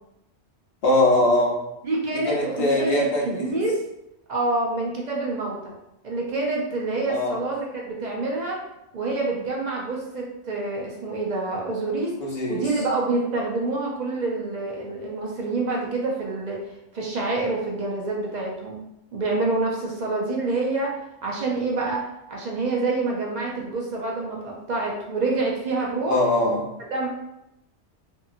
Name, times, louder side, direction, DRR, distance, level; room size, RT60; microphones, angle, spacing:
voice 1, 0.8-1.6 2.1-3.6 7.1-7.3 12.2-12.7 26.1-26.6, left 1 dB, 60° left, -3 dB, 0.9 m, -22 dB
voice 2, 1.8-3.8 4.3-5.7 6.0-8.6 8.9-12.1 12.5-16.6 16.9-18.8 19.1-22.0 22.3-26.2 26.9-27.1, right 3 dB, 55° right, -2 dB, 0.5 m, -27 dB
2.7 x 2.6 x 2.4 m, 0.87 s
omnidirectional pair, 1.2 m